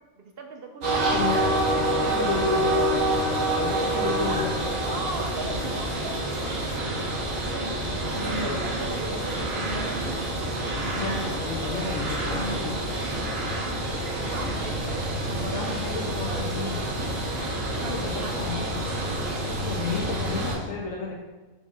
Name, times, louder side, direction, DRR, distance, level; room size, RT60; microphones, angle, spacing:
voice 1, 0.2-2.4 2.7-3.1 4.2-4.5 4.8-10.2 14.2-17.1 17.8-18.8, right 3 dB, 55° right, 3 dB, 0.7 m, -39 dB
sound 1, 0.8-20.6, right 1 dB, 80° right, 1.6 m, -27 dB
voice 2, 1.1-2.6 3.6-5.2 5.5-5.7 6.6-6.7 7.7-7.9 8.2-8.6 10.9-12.8 15.4-16.8 17.7-18.9 19.4-21.1, left 4 dB, 75° left, -3 dB, 1.1 m, -33 dB
5.1 x 4.9 x 4.0 m, 1.2 s
omnidirectional pair, 1.4 m